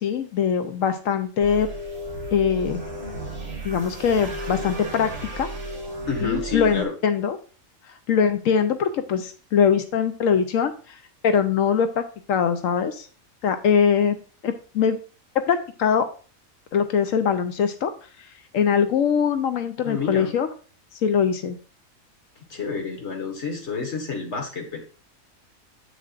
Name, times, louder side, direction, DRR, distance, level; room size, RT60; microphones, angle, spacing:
voice 1, 0.0-1.7 2.3-2.8 3.6-5.1 5.4-5.5 6.2-7.4 8.1-10.7 11.2-12.0 12.3-13.1 13.4-15.0 15.5-16.1 16.7-17.9 18.5-20.5 21.0-21.6, left 7 dB, 75° left, 9 dB, 1.0 m, -22 dB
sound 1, 1.4-6.9, right 1 dB, 40° right, 1.8 m, -34 dB
voice 2, 6.1-6.9 19.8-20.3 22.5-24.9, left 4 dB, 55° left, 2 dB, 1.8 m, -29 dB
7.6 x 6.7 x 2.5 m, 0.38 s
omnidirectional pair, 1.4 m